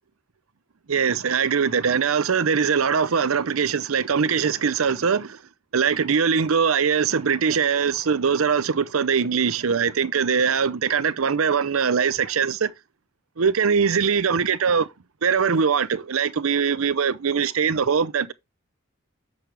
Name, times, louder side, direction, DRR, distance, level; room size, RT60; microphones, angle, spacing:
voice 1, 0.9-5.4 5.7-12.7 13.4-14.9 15.2-18.3, right 6 dB, 75° right, 0.6 m, -22 dB
7.8 x 6.5 x 3.3 m
head